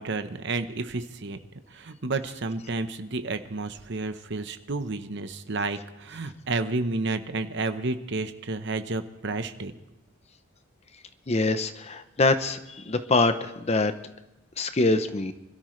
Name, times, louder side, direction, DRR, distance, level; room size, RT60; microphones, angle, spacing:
voice 1, 0.0-1.4 1.7-9.7, right 3 dB, 55° right, 9 dB, 0.9 m, -31 dB
voice 2, 11.3-13.9 14.6-15.3, left 3 dB, 30° left, 10 dB, 0.7 m, -24 dB
25.5 x 13.0 x 3.2 m, 0.96 s
head